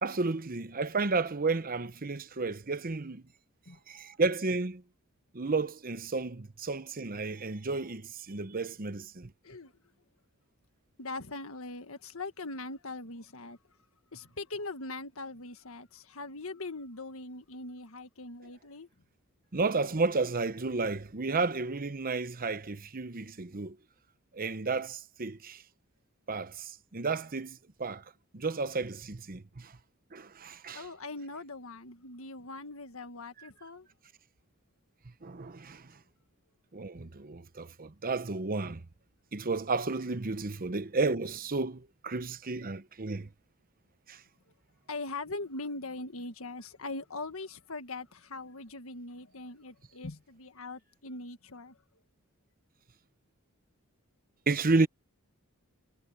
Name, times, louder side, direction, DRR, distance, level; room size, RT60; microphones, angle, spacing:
voice 1, 0.0-3.2 3.9-4.8 5.3-9.3 19.5-23.8 24.3-25.6 26.3-28.0 28.3-29.7 30.1-30.9 35.2-35.9 36.7-38.8 39.3-43.3 44.1-44.2 54.5-54.9, right 3 dB, 40° right, 0.9 m, -32 dB
voice 2, 11.0-13.6 14.1-18.9 30.7-33.9 44.9-51.8, left 2 dB, 70° left, 1.7 m, -41 dB
head